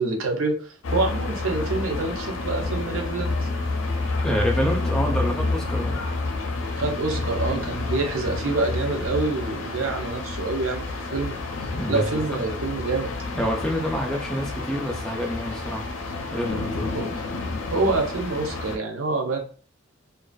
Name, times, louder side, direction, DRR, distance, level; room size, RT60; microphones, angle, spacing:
voice 1, 0.0-3.3 6.8-11.4 11.9-13.1 16.9-17.1 17.7-19.4, right 3 dB, 75° right, 3 dB, 0.6 m, -26 dB
sound 1, 0.8-18.8, left 3 dB, 70° left, 0.5 m, -29 dB
voice 2, 4.2-6.0 11.7-12.4 13.4-15.9 16.3-16.9, equal, 5° left, -1 dB, 0.4 m, -27 dB
2.4 x 2.3 x 2.2 m, 0.39 s
head